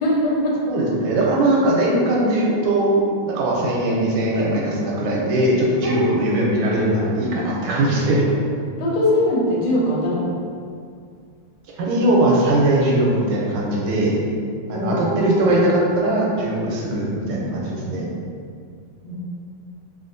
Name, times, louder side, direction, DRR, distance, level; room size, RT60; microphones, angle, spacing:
voice 1, 0.0-0.6 5.8-6.4 8.8-10.3 14.7-15.6 19.0-19.2, left 1 dB, 80° left, -5 dB, 1.5 m, -22 dB
voice 2, 0.7-2.9 3.2-8.2 11.8-14.2 14.7-18.1, right 1 dB, 90° right, -3 dB, 1.5 m, -20 dB
3.4 x 2.4 x 2.5 m, 2.2 s
omnidirectional pair, 2.3 m